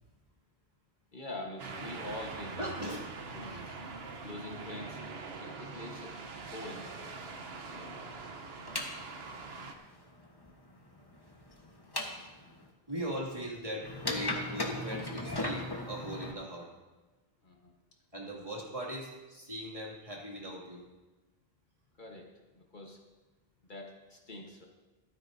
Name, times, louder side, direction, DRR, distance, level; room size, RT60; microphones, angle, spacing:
voice 1, 1.1-2.7 3.3-3.8 4.2-5.0 5.4-6.1 6.5-7.3 7.7-7.9 17.4-17.7 22.0-22.3 22.5-23.0 23.6-24.7, left 2 dB, 50° left, 0 dB, 1.4 m, -44 dB
sound 1, 1.6-9.7, right 4 dB, 75° right, 1.2 m, -43 dB
voice 2, 2.6-3.0 3.4-3.6 12.9-16.7 18.1-20.8, equal, 35° right, -4 dB, 2.5 m, -39 dB
sound 2, 8.6-12.7 13.8-16.3, left 1 dB, 25° left, 1.2 m, -38 dB
14.5 x 13.0 x 2.7 m, 1.2 s
omnidirectional pair, 1.1 m